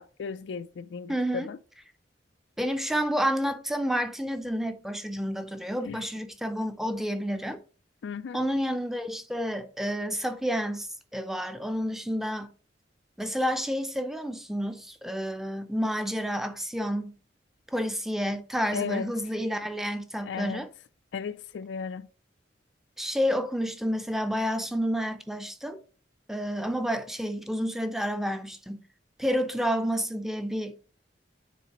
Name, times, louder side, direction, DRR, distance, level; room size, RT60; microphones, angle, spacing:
voice 1, 0.0-1.6 5.8-6.0 8.0-8.4 18.7-19.1 20.3-20.6 21.1-22.1, left 6 dB, 75° left, 0.4 m, -35 dB
voice 2, 1.1-1.5 2.6-7.6 8.3-10.9 11.1-12.5 13.2-17.1 17.7-20.7 23.0-25.8 26.3-28.8 29.2-30.7, equal, ahead, 0.5 m, -30 dB
9.2 x 4.0 x 3.0 m
head